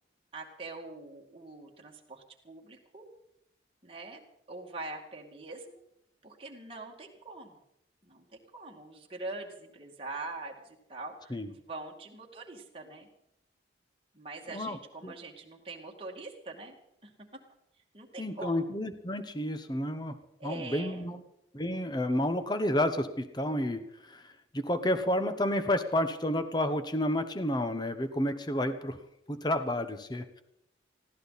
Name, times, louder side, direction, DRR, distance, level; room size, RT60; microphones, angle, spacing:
voice 1, 0.3-3.1 3.8-4.2 4.5-5.8 6.2-7.6 8.0-11.4 11.7-13.1 14.1-16.8 17.0-17.4 17.9-18.6 20.4-21.2, right 2 dB, 30° right, 0 dB, 2.2 m, -43 dB
voice 2, 18.2-20.1 20.4-21.2 21.5-24.2 24.5-29.0 29.3-30.4, left 1 dB, 20° left, 10 dB, 0.9 m, -30 dB
20.0 x 15.5 x 4.1 m, 0.82 s
head